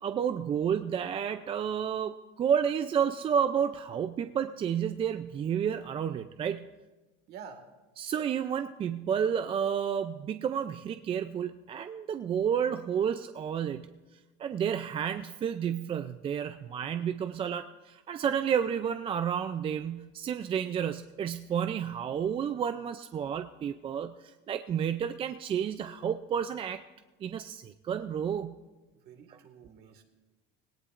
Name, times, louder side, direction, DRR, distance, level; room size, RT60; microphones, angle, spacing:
voice 1, 0.0-6.7 8.0-14.0 14.4-26.8 27.2-28.6 29.3-29.4, right 8 dB, 25° right, 10 dB, 0.4 m, -31 dB
voice 2, 7.3-7.6 29.0-30.0, right 7 dB, 55° right, 5 dB, 1.8 m, -48 dB
18.0 x 17.5 x 2.5 m, 1.2 s
cardioid pair, 135°, 20 cm